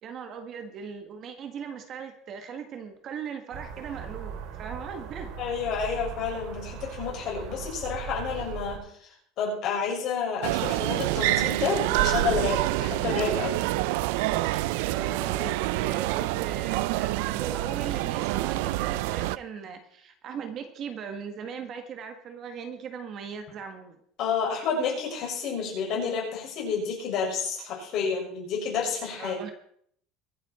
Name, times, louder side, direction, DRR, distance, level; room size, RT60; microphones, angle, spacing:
voice 1, 0.0-5.3 14.9-24.0 29.2-29.5, right 6 dB, 35° right, 7 dB, 1.6 m, -39 dB
sound 1, 3.5-8.8, right 8 dB, 60° right, 2.8 m, -39 dB
voice 2, 5.4-8.9 9.4-13.7 24.2-29.4, left 6 dB, 45° left, -1 dB, 5.9 m, -30 dB
sound 2, 10.4-19.4, right 18 dB, 85° right, 0.5 m, -27 dB
23.0 x 8.8 x 4.3 m, 0.64 s
cardioid pair, 165°, 0 cm